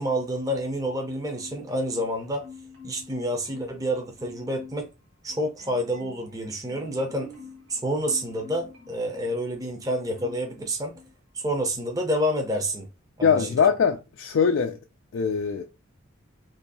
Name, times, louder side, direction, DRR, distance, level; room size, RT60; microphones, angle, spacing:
voice 1, 0.0-2.5 2.8-4.9 5.2-7.3 7.7-11.0 11.3-12.9 13.2-13.5, equal, 15° right, 0.6 m, -28 dB
Marimba xylophone, 1.3-2.1 2.4-3.8 4.2-4.9 5.3-9.4 9.8-10.5 10.9-11.1, left 4 dB, 65° right, 1.4 m, -47 dB
voice 2, 13.2-14.8 15.1-15.6, left 6 dB, 70° left, 0.4 m, -22 dB
2.7 x 2.7 x 4.0 m
head